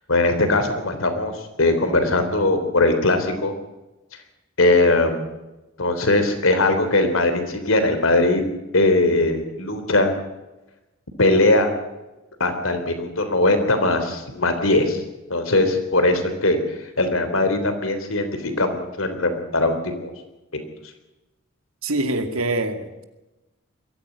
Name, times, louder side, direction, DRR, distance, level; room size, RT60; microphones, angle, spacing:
voice 1, 0.1-3.5 4.6-5.3 5.8-8.4 8.7-10.1 11.2-11.7 12.4-15.0 15.3-16.6 17.0-20.1 20.5-20.7, left 2 dB, 70° left, 8 dB, 3.6 m, -20 dB
voice 2, 21.8-23.0, right 2 dB, 85° right, 7 dB, 2.4 m, -25 dB
22.0 x 14.5 x 9.8 m, 1.0 s
head